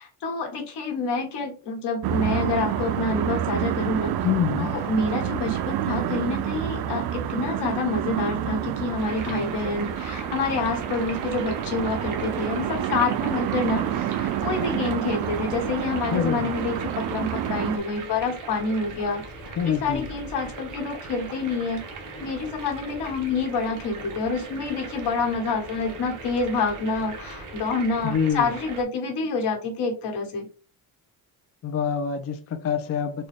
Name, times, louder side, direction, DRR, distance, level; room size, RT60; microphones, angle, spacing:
voice 1, 0.0-4.2 4.6-19.2 19.6-21.8 22.1-30.4, left 3 dB, 75° left, 1.5 m, -27 dB
sound 1, 2.0-17.8, right 10 dB, 65° right, 0.5 m, -28 dB
voice 2, 4.2-4.8 16.1-16.5 19.6-20.0 28.0-28.5 31.6-33.3, left 7 dB, 35° left, 0.4 m, -26 dB
sound 2, 9.0-28.8, right 3 dB, 45° right, 1.0 m, -39 dB
4.0 x 2.3 x 3.3 m
cardioid pair, 125°, 41 cm